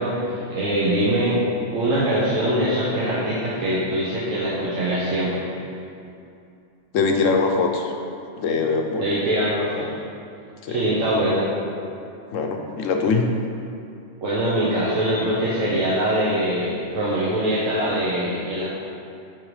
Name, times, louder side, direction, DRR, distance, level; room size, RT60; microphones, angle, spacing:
voice 1, 0.0-1.4 1.7-5.4 9.0-9.9 10.7-11.5 14.2-18.6, right 1 dB, 90° right, -8 dB, 1.4 m, -23 dB
voice 2, 6.9-7.9 8.4-9.1 10.6-10.8 12.3-13.3, left 4 dB, 90° left, 3 dB, 1.1 m, -22 dB
9.6 x 3.7 x 4.9 m, 2.6 s
omnidirectional pair, 1.3 m